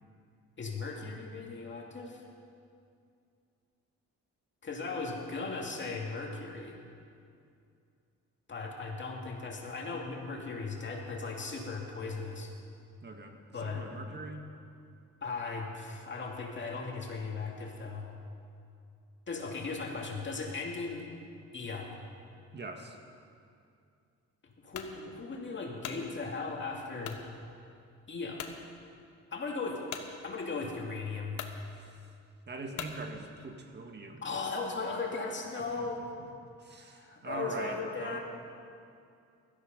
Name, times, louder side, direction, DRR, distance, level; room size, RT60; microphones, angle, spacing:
voice 1, 0.6-2.2 4.6-6.8 8.5-12.5 13.5-13.9 15.2-18.1 19.3-21.1 21.5-22.0 24.6-27.2 28.1-28.4 29.3-29.8 30.2-31.4 34.2-36.1 36.8-38.2, left 4 dB, 40° left, 0 dB, 2.5 m, -37 dB
voice 2, 13.0-14.5 22.5-23.0 31.6-32.0 32.5-34.2 36.6-38.2, right 3 dB, 35° right, 4 dB, 1.7 m, -42 dB
sound 1, 24.7-25.0 25.5-26.0 27.0-27.3 27.8-27.9 28.4-28.6 29.9-30.1 30.9-31.0 31.3-31.6 32.7-33.0, left 9 dB, 75° left, 1.2 m, -41 dB
16.5 x 13.0 x 5.4 m, 2.4 s
cardioid pair, 90°, 30 cm